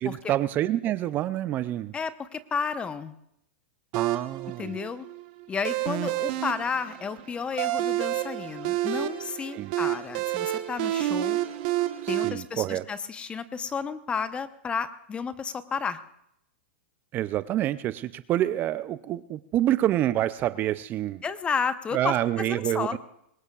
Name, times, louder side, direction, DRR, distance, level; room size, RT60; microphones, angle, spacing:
voice 1, 0.0-1.9 3.9-4.7 9.5-9.7 12.0-12.9 17.1-21.2 21.9-23.0, right 13 dB, 30° right, 15 dB, 0.5 m, -27 dB
voice 2, 1.9-3.1 4.6-5.1 5.5-11.4 12.1-16.0 21.2-23.0, left 6 dB, 20° left, 12 dB, 0.9 m, -32 dB
sound 1, 3.9-12.3, right 15 dB, 55° right, 1.2 m, -29 dB
22.0 x 19.0 x 2.4 m, 0.76 s
hypercardioid pair, 120°, 6 cm